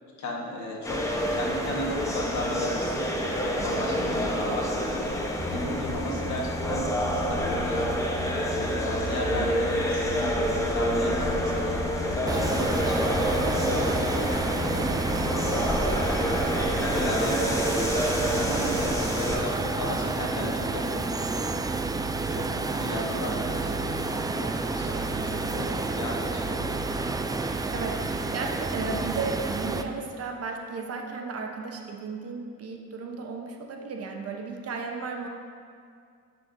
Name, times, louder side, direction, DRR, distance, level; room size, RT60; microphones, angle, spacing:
voice 1, 0.2-8.0 8.6-11.9 12.2-14.9 15.6-16.2 16.8-21.5 22.4-25.7 26.0-26.9, left 1 dB, 70° left, -1 dB, 1.4 m, -35 dB
sound 1, 0.8-19.4, equal, 10° left, 1.0 m, -28 dB
sound 2, 5.4-18.6, left 2 dB, 30° right, 1.0 m, -37 dB
sound 3, 12.3-29.8, right 3 dB, 15° right, 0.3 m, -30 dB
voice 2, 27.7-35.3, right 4 dB, 55° right, 2 dB, 0.9 m, -34 dB
11.0 x 5.7 x 2.7 m, 2.2 s
cardioid pair, 90°, 30 cm